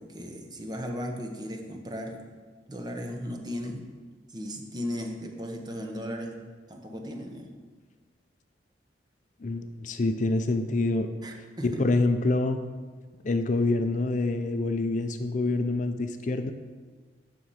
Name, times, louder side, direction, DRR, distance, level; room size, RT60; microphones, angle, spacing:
voice 1, 0.0-2.2 2.7-3.8 4.3-7.5 11.2-11.8, equal, 25° right, 3 dB, 1.0 m, -36 dB
voice 2, 9.4-11.1 11.6-12.6 13.2-16.5, left 2 dB, 45° left, 8 dB, 0.5 m, -26 dB
9.0 x 6.1 x 5.6 m, 1.5 s
head